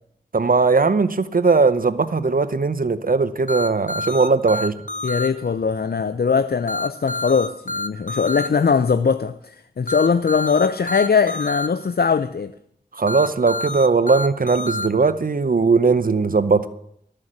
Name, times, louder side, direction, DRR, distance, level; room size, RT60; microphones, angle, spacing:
voice 1, 0.3-4.7 12.9-16.7, right 4 dB, 55° right, 0.6 m, -19 dB
sound 1, 3.5-5.3 6.7-8.5 9.9-11.7 13.1-14.9, left 2 dB, 50° left, 1.2 m, -27 dB
voice 2, 5.0-12.5, left 5 dB, 70° left, 0.5 m, -21 dB
12.5 x 6.6 x 7.4 m
wide cardioid pair, 40°, 17 cm